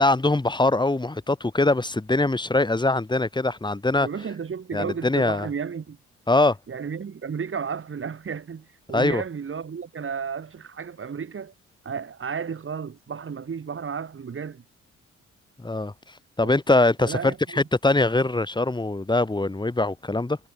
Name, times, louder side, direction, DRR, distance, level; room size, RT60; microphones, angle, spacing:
voice 1, 0.0-4.1 4.7-5.5 6.3-6.6 8.9-9.2 15.6-15.9 16.4-20.4, left 2 dB, 15° left, 5.3 m, -22 dB
voice 2, 4.0-6.0 6.7-11.5 11.8-14.6 16.4-16.6 17.0-17.4, right 6 dB, 45° right, 7.4 m, -33 dB
cardioid pair, 90°, 30 cm